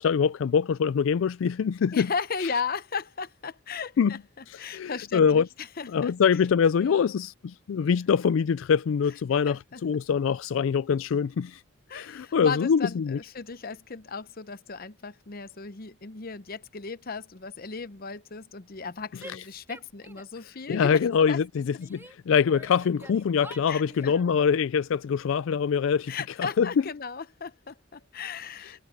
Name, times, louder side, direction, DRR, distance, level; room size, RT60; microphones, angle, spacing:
voice 1, 0.0-2.1 2.4-2.5 4.0-4.1 4.5-5.5 5.9-11.6 11.9-13.2 19.3-19.4 20.7-26.7, left 6 dB, 70° left, 0.3 m, -24 dB
voice 2, 1.9-6.1 6.8-7.0 9.5-9.8 11.9-21.4 23.7-24.1 26.1-28.8, left 5 dB, 45° left, 0.8 m, -36 dB
Female speech woman speaking / Yell, 19.2-20.4 20.7-22.1 22.5-24.3, right 1 dB, 10° right, 2.9 m, -48 dB
head